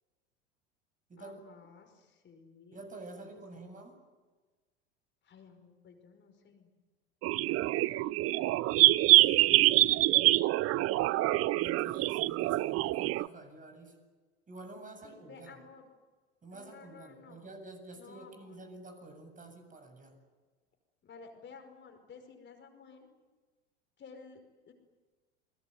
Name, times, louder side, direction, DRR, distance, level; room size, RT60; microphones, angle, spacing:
voice 1, 1.2-2.8 3.2-3.4 5.2-6.7 7.4-8.8 15.0-15.9 16.5-17.5 18.0-18.7 21.0-23.1 24.0-24.7, left 5 dB, 35° left, 5 dB, 5.4 m, -54 dB
voice 2, 2.7-4.0 9.1-10.9 11.6-14.0 14.5-15.5 16.4-20.2, right 2 dB, 25° right, 5 dB, 7.9 m, -49 dB
sound 1, 7.2-13.3, right 17 dB, 45° right, 0.7 m, -25 dB
29.5 x 20.5 x 9.5 m, 1.3 s
hypercardioid pair, 85°, 33 cm